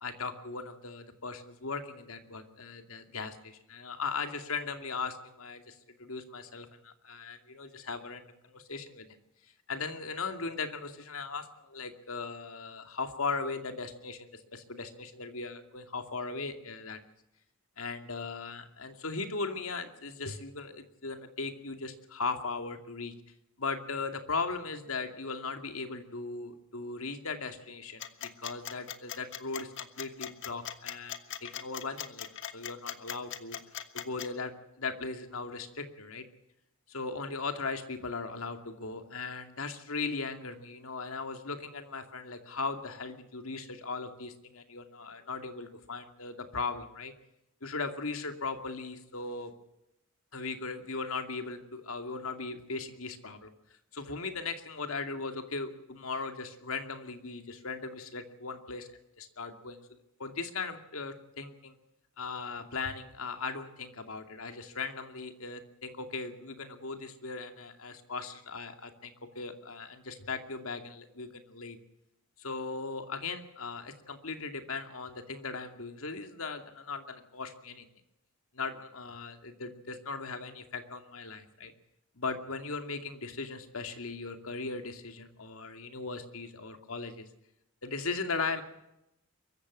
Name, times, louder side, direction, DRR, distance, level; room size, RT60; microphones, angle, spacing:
voice 1, 0.0-9.1 9.7-17.0 17.8-23.1 23.6-32.3 32.5-33.6 33.9-36.3 36.9-47.1 47.6-49.5 50.3-53.5 53.9-58.9 59.2-59.8 60.2-61.7 62.2-71.8 72.4-77.9 78.5-81.7 82.2-87.2 87.8-88.6, left 4 dB, 80° left, 6 dB, 2.5 m, -38 dB
sound 1, 28.0-34.3, left 10 dB, 60° left, 1.4 m, -39 dB
23.5 x 14.5 x 8.7 m, 0.85 s
head